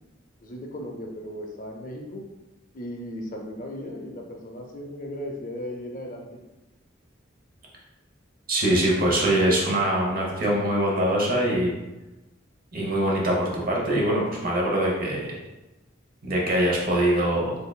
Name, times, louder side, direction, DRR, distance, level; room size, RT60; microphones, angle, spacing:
voice 1, 0.4-2.2 2.7-6.3, equal, 45° left, 2 dB, 0.5 m, -36 dB
voice 2, 8.5-11.8 12.7-15.3 16.2-17.5, right 1 dB, 45° right, -2 dB, 0.9 m, -23 dB
3.7 x 3.4 x 2.2 m, 1.0 s
head